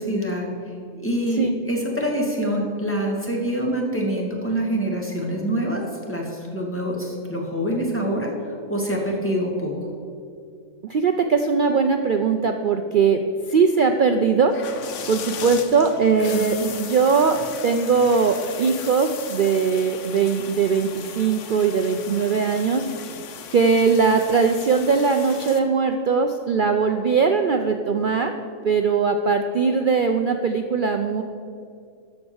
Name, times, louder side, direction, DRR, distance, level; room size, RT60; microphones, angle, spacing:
voice 1, 0.0-9.7 16.3-16.7, right 1 dB, 10° left, -1 dB, 1.9 m, -26 dB
voice 2, 10.9-13.2 13.5-14.6 15.1-22.9 23.5-28.3 28.6-31.2, right 5 dB, 60° right, 6 dB, 0.5 m, -20 dB
sound 1, 14.5-25.6, left 7 dB, 65° left, 1.1 m, -37 dB
13.0 x 5.2 x 7.1 m, 2.4 s
omnidirectional pair, 1.4 m